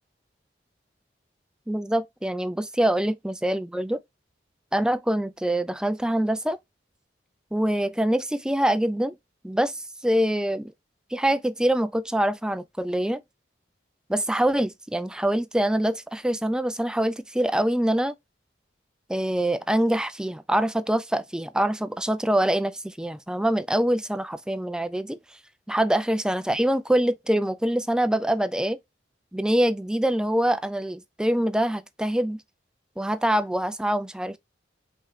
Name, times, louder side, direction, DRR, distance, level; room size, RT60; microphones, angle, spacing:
voice 1, 1.7-4.0 4.7-6.6 7.5-9.1 9.4-10.7 11.1-13.2 14.1-18.1 19.1-25.2 25.7-28.8 29.3-32.4 33.0-34.4, right 1 dB, 5° right, 0.3 m, -24 dB
5.2 x 3.6 x 2.7 m
head